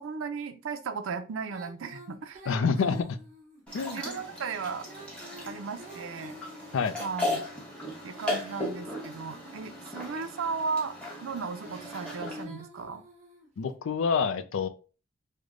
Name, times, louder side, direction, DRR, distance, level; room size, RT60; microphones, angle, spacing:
voice 1, 0.0-3.0 3.9-4.9 5.5-6.4 7.0-7.4 8.0-13.0, right 5 dB, 85° right, 10 dB, 0.4 m, -36 dB
Female singing, 1.5-3.6 4.7-7.1 7.8-10.0 11.3-13.5, equal, 35° right, 1.0 m, -48 dB
voice 2, 2.5-3.0 3.7-4.0 6.7-6.9 13.6-14.7, left 5 dB, 80° left, 11 dB, 0.4 m, -27 dB
sound 1, 3.7-12.4, left 1 dB, 5° left, 0.9 m, -37 dB
3.2 x 2.1 x 3.6 m, 0.35 s
head